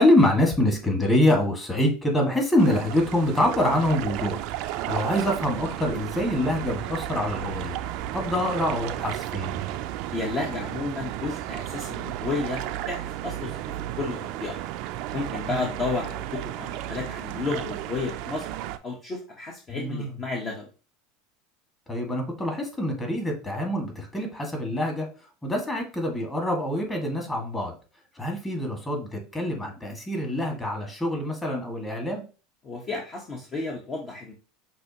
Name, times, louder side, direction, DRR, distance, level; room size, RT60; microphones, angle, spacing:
voice 1, 0.0-7.8 8.1-9.6 15.5-15.6 19.7-20.1 21.9-25.1 25.4-27.7 28.2-32.2, left 1 dB, 15° left, 2 dB, 1.9 m, -25 dB
sound 1, 2.6-18.8, right 13 dB, 60° right, 0.4 m, -33 dB
voice 2, 10.1-14.6 15.1-18.5 18.8-20.7 32.6-34.3, left 3 dB, 35° left, -1 dB, 1.1 m, -32 dB
6.0 x 2.7 x 2.9 m, 0.34 s
hypercardioid pair, 90°, 0 cm